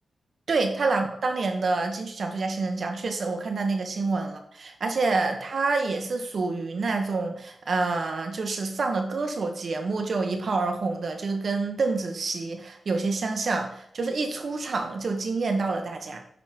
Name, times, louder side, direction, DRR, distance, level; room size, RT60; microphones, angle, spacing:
voice 1, 0.5-16.2, right 3 dB, 60° right, 4 dB, 1.5 m, -27 dB
9.9 x 5.7 x 4.5 m, 0.66 s
wide cardioid pair, 90°, 0 cm